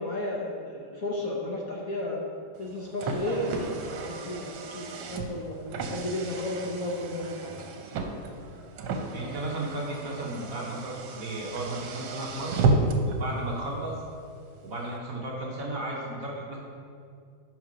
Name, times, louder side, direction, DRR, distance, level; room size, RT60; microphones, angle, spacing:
voice 1, 0.0-2.2 2.6-5.6 5.8-7.6, left 1 dB, 55° left, -2 dB, 1.1 m, -33 dB
Car, 2.5-13.2, right 3 dB, 85° right, 1.5 m, -32 dB
voice 2, 9.1-14.0 14.6-16.6, right 2 dB, 55° right, -3 dB, 1.1 m, -34 dB
6.2 x 5.7 x 5.1 m, 2.3 s
omnidirectional pair, 2.2 m